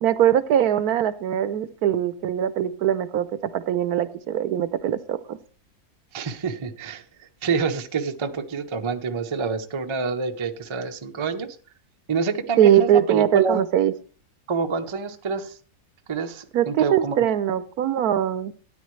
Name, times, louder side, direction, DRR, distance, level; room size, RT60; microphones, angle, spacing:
voice 1, 0.0-5.4 12.6-13.9 16.5-18.5, right 10 dB, 75° right, 14 dB, 1.1 m, -21 dB
voice 2, 6.1-11.6 12.1-13.6 14.5-15.6 16.1-17.2, right 5 dB, 30° right, 6 dB, 0.5 m, -27 dB
13.0 x 9.6 x 3.2 m, 0.39 s
omnidirectional pair, 1.7 m